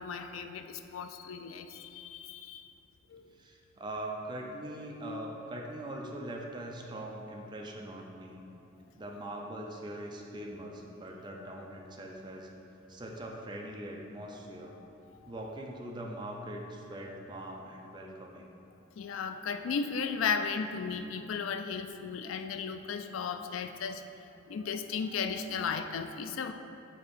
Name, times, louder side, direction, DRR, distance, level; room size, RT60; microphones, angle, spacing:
voice 1, 0.0-2.7 3.1-3.2 15.2-15.3 19.0-24.0 24.5-26.5, left 6 dB, 85° left, 8 dB, 0.3 m, -35 dB
voice 2, 3.1-8.4 8.9-12.5 12.9-14.7 15.3-18.5, right 1 dB, 20° right, 0 dB, 0.5 m, -42 dB
4.5 x 4.2 x 5.2 m, 2.7 s
head